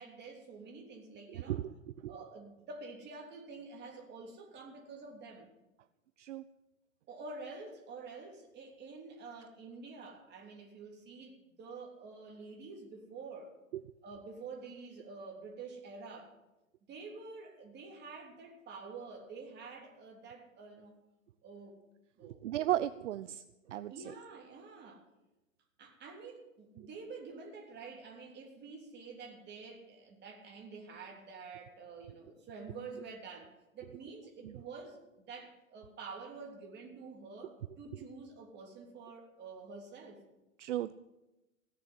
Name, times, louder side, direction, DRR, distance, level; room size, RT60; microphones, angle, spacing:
voice 1, 0.0-1.6 2.1-5.5 7.1-13.5 14.0-16.4 16.9-20.9 21.4-21.8 22.2-22.4 23.9-25.0 25.8-35.0 35.3-40.2, right 4 dB, 25° right, 2 dB, 3.2 m, -48 dB
voice 2, 22.4-23.4 23.7-23.9 40.6-40.9, right 13 dB, 65° right, 14 dB, 0.6 m, -34 dB
16.5 x 7.0 x 9.3 m, 1.0 s
hypercardioid pair, 110°, 40 cm